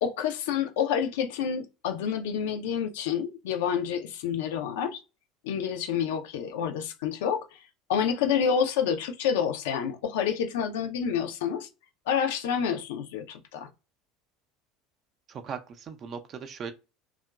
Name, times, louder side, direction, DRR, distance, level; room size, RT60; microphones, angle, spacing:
voice 1, 0.0-5.0 5.4-7.6 7.9-11.7 12.1-13.7, left 7 dB, 65° left, 0.4 m, -28 dB
voice 2, 15.3-16.7, right 6 dB, 40° right, 0.5 m, -38 dB
2.8 x 2.3 x 2.2 m
figure-of-eight pair, 70°, 0 cm